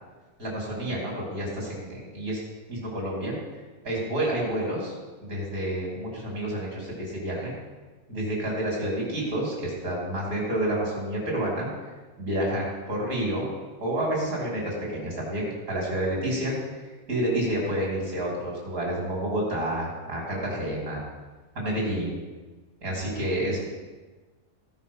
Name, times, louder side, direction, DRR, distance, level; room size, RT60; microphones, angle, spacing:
voice 1, 0.4-2.4 2.7-3.4 3.8-4.9 5.2-7.5 8.1-11.7 12.2-13.5 13.8-21.0 21.6-22.2 22.8-23.7, right 1 dB, 65° right, -3 dB, 4.3 m, -29 dB
17.0 x 5.7 x 5.7 m, 1.3 s
omnidirectional pair, 1.6 m